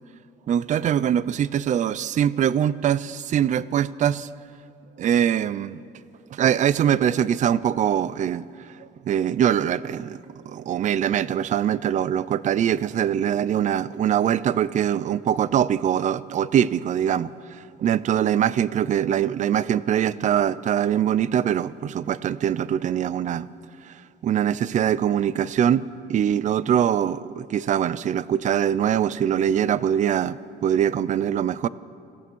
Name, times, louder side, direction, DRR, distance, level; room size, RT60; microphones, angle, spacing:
voice 1, 0.5-4.3 5.0-5.8 6.3-10.2 10.5-23.5 23.8-31.7, right 9 dB, 45° right, 0.6 m, -23 dB
26.5 x 16.0 x 6.3 m
cardioid pair, 110°, 17 cm